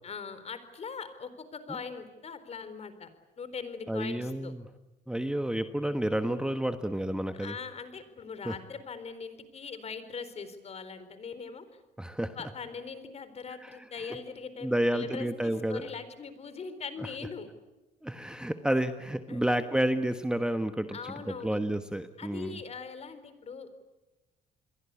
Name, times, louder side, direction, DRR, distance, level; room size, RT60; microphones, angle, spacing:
voice 1, 0.0-3.1 3.4-4.5 7.4-11.7 12.3-17.5 18.3-18.4 19.3-19.5 20.9-21.6 22.2-23.8, left 5 dB, 40° left, 12 dB, 4.2 m, -41 dB
voice 2, 3.9-4.6 5.1-7.5 8.4-8.5 12.0-12.4 13.6-13.8 14.6-15.8 18.0-22.6, right 1 dB, 5° right, 8 dB, 1.3 m, -30 dB
28.5 x 22.5 x 8.5 m, 1.1 s
cardioid pair, 110°, 17 cm